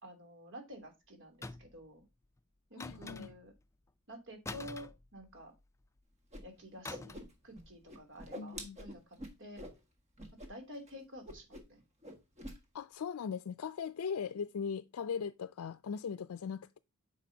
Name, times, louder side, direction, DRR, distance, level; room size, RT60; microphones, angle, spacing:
voice 1, 0.0-2.0 2.7-3.5 4.1-5.5 6.4-9.6 10.3-11.8, equal, 55° right, 2.9 m, -50 dB
sound 1, 1.4-1.9 2.8-3.6 4.4-5.6 6.8-7.4 7.6-7.8, left 3 dB, 15° left, 0.4 m, -46 dB
voice 2, 2.8-3.3 8.4-8.8 12.7-16.8, left 6 dB, 75° left, 0.4 m, -39 dB
Whoosh swoosh swish, 6.3-6.4 6.7-7.6 7.9-9.8 10.2-10.5 10.7-10.9 11.2-11.8 12.0-12.6, equal, 30° right, 1.7 m, -46 dB
9.3 x 6.0 x 2.7 m
head